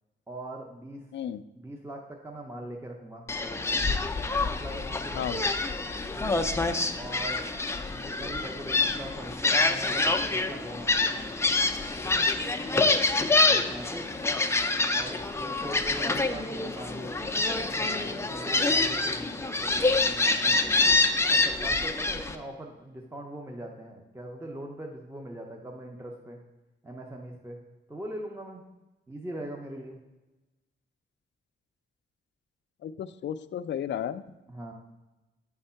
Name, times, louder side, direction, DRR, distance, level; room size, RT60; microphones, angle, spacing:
voice 1, 0.3-1.1 1.5-3.8 4.4-5.5 6.2-6.4 7.0-7.5 7.9-11.4 12.0-12.3 12.6-13.0 13.5-14.1 14.9-17.1 17.5-20.8 21.3-26.4 26.8-27.6 27.9-28.6 29.1-30.0 34.5-34.7, right 1 dB, 10° right, 1 dB, 0.8 m, -41 dB
voice 2, 1.1-1.4 5.1-5.5 32.8-34.2, left 9 dB, 70° left, 11 dB, 0.4 m, -33 dB
Gull seagull, 3.3-22.4, left 3 dB, 15° left, 0.5 m, -26 dB
8.8 x 3.6 x 5.6 m, 1.1 s
cardioid pair, 110°, 20 cm